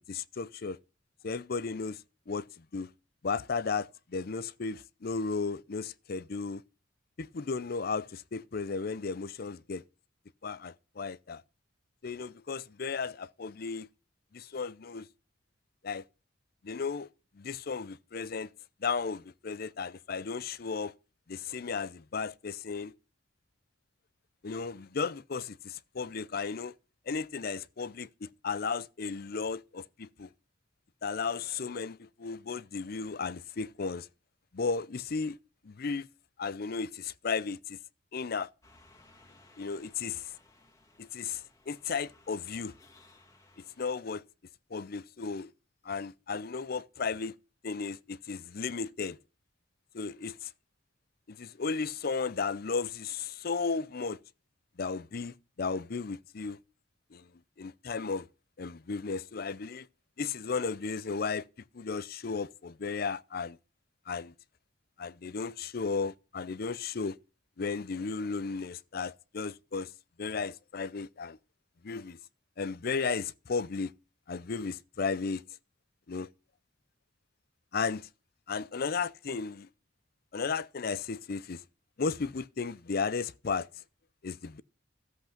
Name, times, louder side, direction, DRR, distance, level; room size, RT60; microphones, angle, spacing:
voice 1, 0.1-0.8 1.2-2.9 3.2-6.6 7.2-9.8 10.4-11.4 12.0-13.9 14.3-15.1 15.8-16.0 16.6-17.1 17.3-18.5 18.8-20.9 21.3-22.9 24.4-26.7 27.1-30.3 31.0-34.1 34.5-35.4 35.6-36.1 36.4-37.8 38.1-38.5 39.6-40.3 41.0-42.7 43.8-44.2 44.7-45.5 45.8-47.3 47.6-49.2 49.9-50.5 51.3-54.2 54.8-56.6 57.1-57.3 57.6-58.3 58.6-59.9 60.2-61.5 61.7-63.6 64.1-64.3 65.0-67.2 67.6-69.9 70.2-71.4 71.8-72.2 72.6-73.9 74.3-75.4 76.1-76.3 77.7-78.1 78.5-79.7 80.3-81.6 82.0-83.7 84.2-84.6, left 5 dB, 50° left, 0.5 m, -34 dB
sound 1, 38.6-43.8, left 2 dB, 15° left, 2.0 m, -60 dB
13.5 x 8.1 x 5.8 m
head